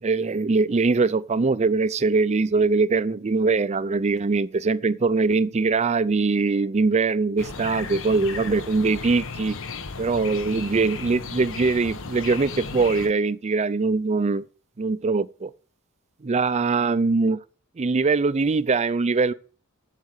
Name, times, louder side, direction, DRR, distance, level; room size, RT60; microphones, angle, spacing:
voice 1, 0.0-9.6 10.0-14.4 14.8-15.5 16.2-17.4 17.8-19.3, right 4 dB, 30° right, 0.4 m, -22 dB
sound 1, 7.4-13.1, left 4 dB, 65° left, 1.0 m, -35 dB
8.4 x 7.5 x 8.2 m
head